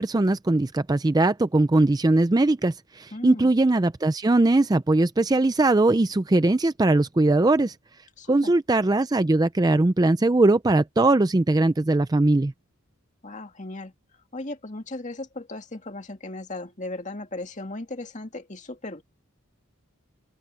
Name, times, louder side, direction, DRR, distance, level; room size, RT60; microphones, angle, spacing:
voice 1, 0.0-7.7 8.3-12.5, right 2 dB, 20° right, 0.4 m, -20 dB
voice 2, 3.1-3.5 8.2-8.5 13.2-13.9 14.3-19.0, left 2 dB, 35° left, 2.2 m, -36 dB
open air
head